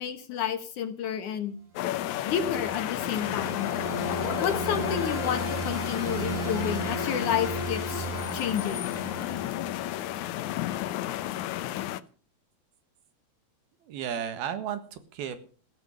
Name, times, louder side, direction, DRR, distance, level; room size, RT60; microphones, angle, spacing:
voice 1, 0.0-1.6 2.3-3.7 4.4-8.9 10.4-10.5, left 8 dB, 65° left, 9 dB, 2.4 m, -31 dB
sound 1, 1.8-12.0, left 13 dB, 80° left, 1.7 m, -32 dB
sound 2, 2.0-10.2, right 2 dB, 15° right, 4.9 m, -36 dB
voice 2, 13.8-15.5, right 8 dB, 75° right, 11 dB, 3.5 m, -34 dB
15.5 x 12.5 x 6.7 m, 0.40 s
omnidirectional pair, 4.4 m